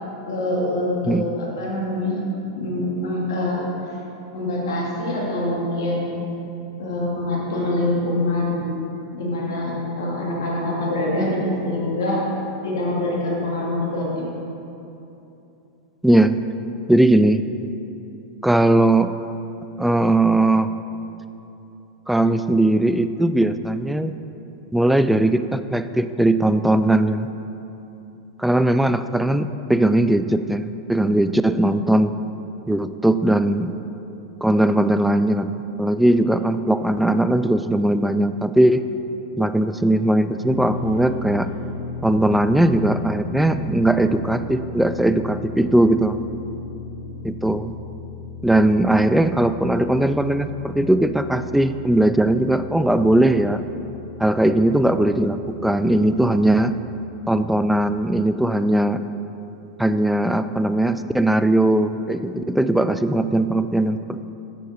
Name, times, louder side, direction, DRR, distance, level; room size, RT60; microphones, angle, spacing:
voice 1, 0.3-2.2 2.6-3.7 4.3-6.2 6.8-8.7 9.1-12.3 12.6-14.3, left 1 dB, 70° left, -3 dB, 1.7 m, -24 dB
voice 2, 16.0-16.4 16.9-17.4 18.4-19.1 19.8-20.7 22.1-24.2 24.7-27.3 28.4-32.1 32.7-33.7 34.4-38.8 39.4-41.5 42.0-46.2 47.2-47.8 48.4-53.6 54.2-56.8 57.3-59.0 59.8-64.2, right 1 dB, 5° right, 10 dB, 0.3 m, -19 dB
sound 1, 40.4-58.0, left 3 dB, 85° right, 1.0 m, -37 dB
9.1 x 6.5 x 3.8 m, 2.9 s
figure-of-eight pair, 95°, 2 cm